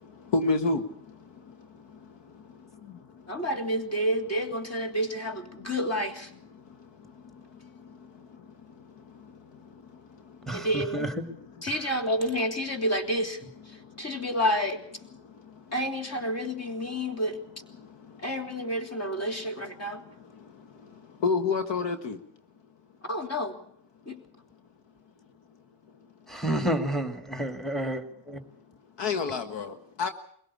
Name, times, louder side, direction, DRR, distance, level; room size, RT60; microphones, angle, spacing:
voice 1, 0.3-0.8 21.2-22.2 29.0-30.1, left 4 dB, 60° left, 9 dB, 1.6 m, -27 dB
voice 2, 3.3-6.3 10.5-11.1 11.6-13.4 13.7-14.8 15.7-17.4 18.2-20.0 23.0-23.6 24.1-24.2, equal, 30° left, 6 dB, 3.4 m, -29 dB
voice 3, 10.5-11.3 11.7-11.8 26.3-28.4, right 1 dB, ahead, 7 dB, 2.3 m, -30 dB
22.0 x 17.0 x 8.6 m, 0.65 s
supercardioid pair, 70°, 49 cm